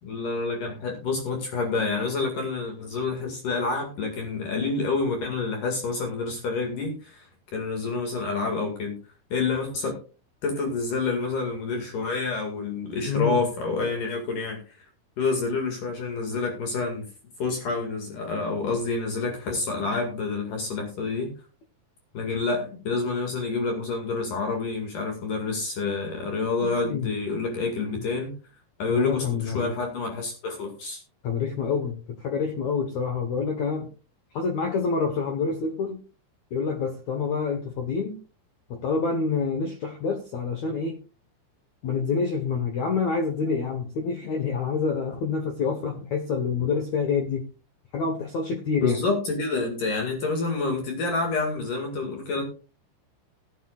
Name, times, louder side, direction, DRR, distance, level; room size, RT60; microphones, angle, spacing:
voice 1, 0.0-9.0 9.3-10.0 10.4-14.6 15.2-17.1 17.4-21.3 22.1-28.3 28.8-31.0 48.8-52.4, left 3 dB, 55° left, 2 dB, 3.2 m, -28 dB
voice 2, 13.1-13.4 26.6-27.1 28.0-28.1 28.9-29.7 31.2-33.9 34.3-36.0 36.5-38.2 38.7-41.0 41.8-47.4 47.9-49.0, left 5 dB, 75° left, 5 dB, 1.7 m, -27 dB
18.5 x 9.3 x 2.4 m, 0.35 s
omnidirectional pair, 5.1 m